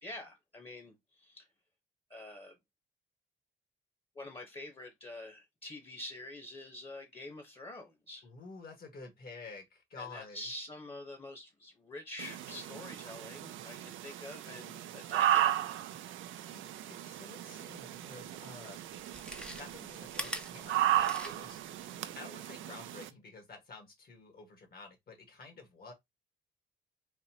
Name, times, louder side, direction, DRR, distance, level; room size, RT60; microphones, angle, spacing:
voice 1, 0.0-1.5 2.1-2.6 4.1-8.3 10.0-15.7, left 1 dB, 30° left, 1.3 m, -46 dB
voice 2, 8.2-10.5 16.5-18.8 19.6-21.6 22.2-25.9, left 4 dB, 50° left, 1.7 m, -50 dB
sound 1, 12.2-23.1, right 12 dB, 75° right, 0.5 m, -35 dB
Chewing mastication, 18.2-18.3 19.0-21.6 22.0-22.1, equal, 5° left, 0.7 m, -42 dB
4.1 x 2.6 x 2.9 m
cardioid pair, 90°, 20 cm